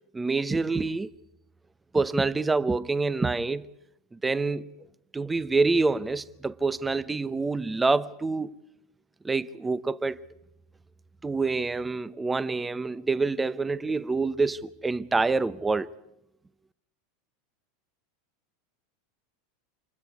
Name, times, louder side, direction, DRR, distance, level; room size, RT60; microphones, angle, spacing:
voice 1, 0.1-1.1 1.9-3.7 4.1-4.7 5.1-8.5 9.2-10.2 11.2-15.9, right 3 dB, 15° right, 0.8 m, -26 dB
29.0 x 26.0 x 4.8 m
hypercardioid pair, 90°, 0 cm